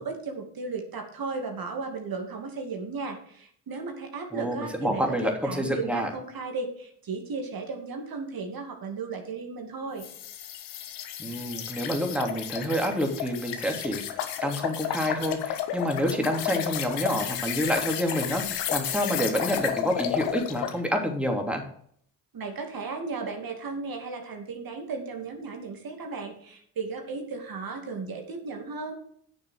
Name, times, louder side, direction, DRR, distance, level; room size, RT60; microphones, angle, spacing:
voice 1, 0.0-10.0 22.3-28.9, right 4 dB, 50° right, 4 dB, 2.6 m, -35 dB
voice 2, 4.3-6.1 11.2-14.0 14.4-21.6, equal, 5° right, 2 dB, 3.0 m, -28 dB
sound 1, 10.0-20.8, left 10 dB, 70° left, 1.4 m, -32 dB
9.9 x 6.8 x 6.5 m, 0.63 s
hypercardioid pair, 45°, 45 cm